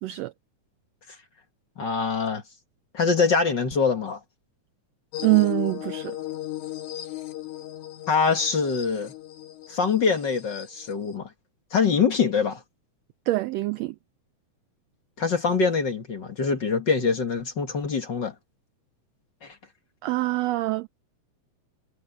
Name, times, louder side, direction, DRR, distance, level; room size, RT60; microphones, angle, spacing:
voice 1, 0.0-0.3 5.2-6.2 13.3-14.0 20.0-20.9, right 20 dB, 85° right, 1.4 m, -24 dB
voice 2, 1.8-2.4 2.9-4.2 8.1-9.1 9.7-11.3 11.7-12.6 15.2-18.3 19.4-19.6, left 5 dB, 40° left, 2.1 m, -24 dB
sound 1, 5.1-11.2, left 14 dB, 75° left, 2.5 m, -37 dB
omnidirectional pair, 3.6 m